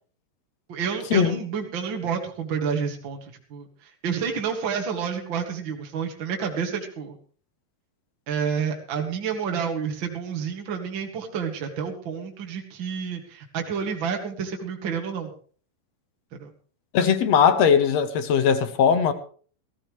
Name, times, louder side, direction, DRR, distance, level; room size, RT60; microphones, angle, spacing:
voice 1, 0.7-3.7 4.0-7.2 8.3-15.3 16.3-16.5, right 6 dB, 40° right, 2.4 m, -29 dB
voice 2, 16.9-19.1, left 7 dB, 60° left, 1.9 m, -19 dB
19.0 x 15.0 x 3.2 m
omnidirectional pair, 4.0 m